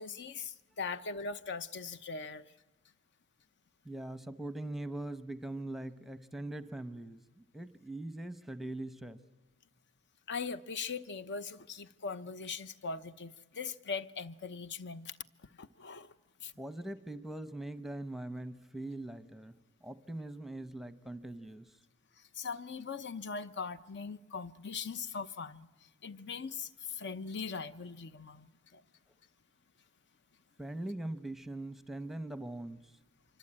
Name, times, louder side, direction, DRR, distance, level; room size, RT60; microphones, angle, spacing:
voice 1, 0.0-2.4 10.3-15.1 15.6-16.1 16.4-16.5 22.3-25.7 26.0-28.8, left 5 dB, 55° left, 0.9 m, -40 dB
voice 2, 3.8-9.2 16.6-21.8 30.6-32.9, right 1 dB, ahead, 0.9 m, -42 dB
25.5 x 25.0 x 8.9 m
head